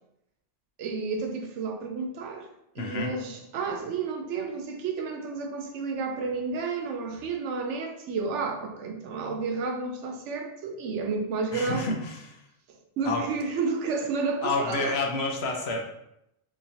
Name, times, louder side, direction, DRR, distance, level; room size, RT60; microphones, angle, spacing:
voice 1, 0.8-2.5 2.8-11.9 13.0-14.9, right 4 dB, 80° right, 4 dB, 0.9 m, -31 dB
voice 2, 2.8-3.2 11.5-12.4 13.0-13.3 14.4-15.8, left 3 dB, 65° left, 2 dB, 0.8 m, -29 dB
3.8 x 3.0 x 2.7 m, 0.81 s
omnidirectional pair, 1.2 m